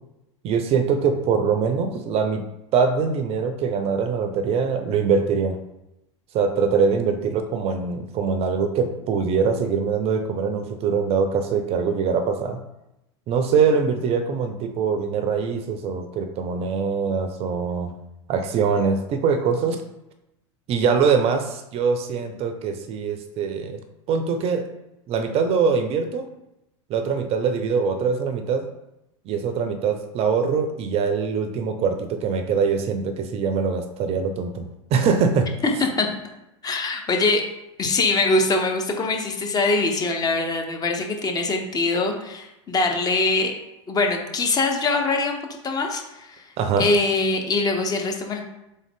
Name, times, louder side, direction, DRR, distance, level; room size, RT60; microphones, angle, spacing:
voice 1, 0.4-2.4 2.7-5.6 6.3-12.6 13.3-17.9 18.3-19.8 20.7-23.8 24.1-24.7 25.1-26.3 26.9-28.7 29.3-35.5 46.6-46.9, right 5 dB, 40° right, 7 dB, 0.5 m, -23 dB
voice 2, 35.6-36.1 36.6-37.4 37.8-43.5 43.9-45.4 45.6-46.4 46.8-48.4, left 3 dB, 25° left, 3 dB, 0.8 m, -23 dB
3.8 x 3.7 x 3.6 m, 0.90 s
hypercardioid pair, 105°, 16 cm